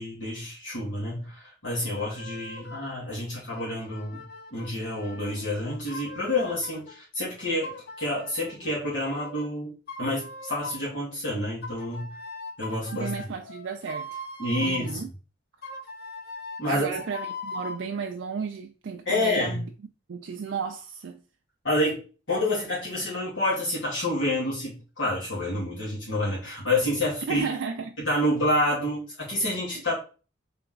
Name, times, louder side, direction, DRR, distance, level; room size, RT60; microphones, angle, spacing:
voice 1, 0.0-9.7 10.0-12.1 12.6-13.3 14.4-15.0 16.6-16.9 19.1-19.6 21.6-27.5 28.0-29.9, left 1 dB, 80° left, 2.3 m, -28 dB
sound 1, 2.0-3.0 3.5-7.0 7.6-9.5 9.9-11.0 11.6-14.9 15.6-17.8, left 2 dB, 55° left, 0.8 m, -40 dB
voice 2, 12.9-14.2 14.6-15.1 16.7-19.7 20.1-21.2 27.3-28.0 29.7-29.8, right 6 dB, 70° right, 0.4 m, -33 dB
3.9 x 3.4 x 3.8 m
head